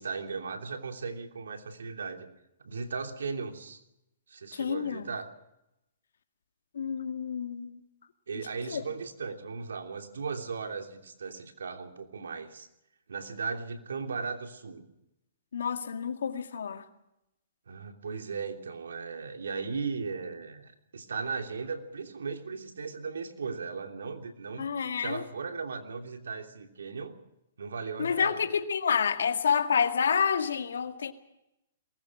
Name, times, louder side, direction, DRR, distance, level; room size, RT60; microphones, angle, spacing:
voice 1, 0.0-2.3 2.6-3.8 4.3-5.3 8.3-12.7 13.1-14.8 17.7-24.7 25.0-27.1 27.6-28.5, right 5 dB, 85° right, 3.0 m, -37 dB
voice 2, 4.5-5.0 6.7-7.8 8.7-8.8 15.5-16.8 24.6-25.2 28.0-31.1, left 7 dB, 80° left, 2.0 m, -29 dB
23.0 x 20.5 x 6.1 m
hypercardioid pair, 140°, 0 cm